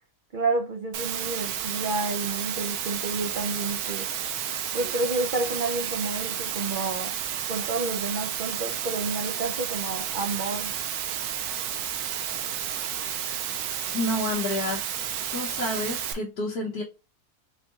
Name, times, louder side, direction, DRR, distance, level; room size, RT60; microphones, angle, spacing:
voice 1, 0.3-4.1 4.7-7.1 7.5-10.7, right 3 dB, 60° right, 0.5 m, -30 dB
Water, 0.9-16.1, right 9 dB, 80° right, 1.1 m, -31 dB
voice 2, 13.9-14.8 15.3-16.8, left 1 dB, 85° left, 1.4 m, -29 dB
4.5 x 3.9 x 2.3 m
omnidirectional pair, 1.6 m